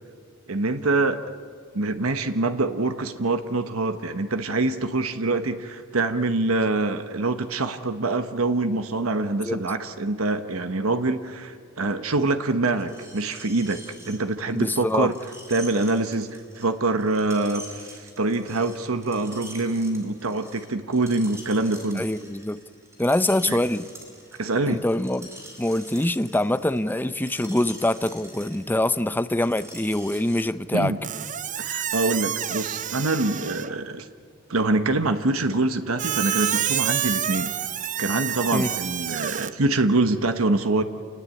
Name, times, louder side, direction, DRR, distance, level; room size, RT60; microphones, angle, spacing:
voice 1, 0.5-1.2 1.7-13.8 14.1-15.1 15.5-22.1 23.5-23.6 24.4-24.8 30.7-31.0 31.6-34.1 34.5-37.5 38.0-40.8, right 2 dB, 90° right, 9 dB, 1.2 m, -25 dB
Screech, 12.8-30.4, right 1 dB, 15° right, 4.2 m, -46 dB
voice 2, 14.5-15.1 21.9-22.6 23.0-23.9 24.6-25.3 25.6-30.9 38.5-38.7, left 1 dB, 10° left, 13 dB, 0.6 m, -24 dB
Squeak, 31.0-33.8 36.0-39.5, right 9 dB, 40° right, 0.8 m, -28 dB
28.0 x 19.5 x 8.6 m, 2.2 s
head